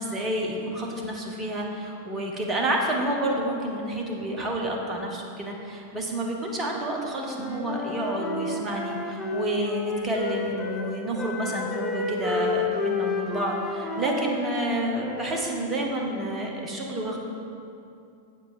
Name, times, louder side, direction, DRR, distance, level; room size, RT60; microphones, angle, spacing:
voice 1, 0.0-17.2, right 1 dB, 20° right, 0 dB, 1.4 m, -29 dB
Wind instrument woodwind instrument, 7.2-10.9 11.2-15.5, left 3 dB, 15° left, 1.0 m, -31 dB
8.2 x 7.4 x 4.6 m, 2.6 s
figure-of-eight pair, 90°, 0 cm